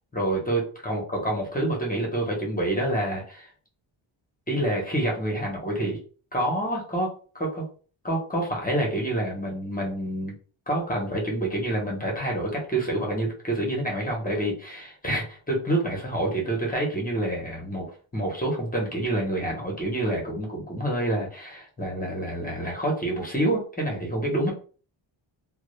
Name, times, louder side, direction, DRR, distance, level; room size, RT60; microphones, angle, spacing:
voice 1, 0.1-3.5 4.5-6.0 6.3-7.6 8.0-10.3 10.7-24.5, right 1 dB, 20° left, -1 dB, 0.6 m, -27 dB
2.1 x 2.0 x 2.9 m, 0.40 s
wide cardioid pair, 140°, 48 cm